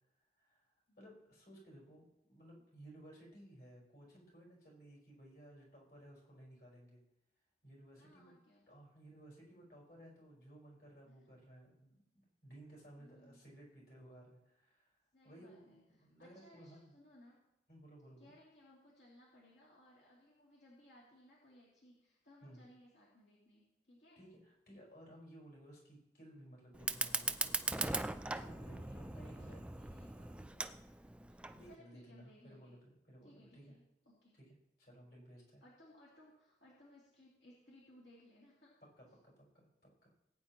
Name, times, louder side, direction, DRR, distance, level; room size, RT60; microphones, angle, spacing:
voice 1, 0.4-7.0 7.6-8.4 8.7-14.9 15.2-16.9 17.7-18.3 22.4-22.7 24.2-28.0 28.2-29.7 31.5-33.8 34.3-35.6 39.0-40.1, right 1 dB, 60° left, -4 dB, 4.8 m, -58 dB
voice 2, 0.9-1.2 8.0-8.6 11.0-11.2 13.0-13.4 15.1-17.4 18.2-24.2 28.6-30.9 31.7-32.7 33.2-34.3 35.6-38.7 39.1-39.2, left 1 dB, 75° left, -7 dB, 2.8 m, -63 dB
Fire, 26.7-31.7, right 2 dB, 5° right, 0.3 m, -40 dB
19.5 x 9.1 x 3.0 m, 0.85 s
head